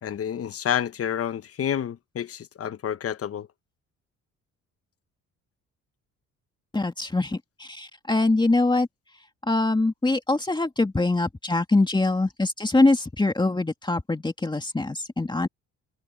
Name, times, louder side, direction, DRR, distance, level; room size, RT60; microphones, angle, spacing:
voice 1, 0.0-3.5, left 9 dB, 50° left, 1.1 m, -29 dB
voice 2, 6.7-8.9 9.5-15.5, left 2 dB, 15° left, 2.5 m, -23 dB
cardioid pair, 90°, 30 cm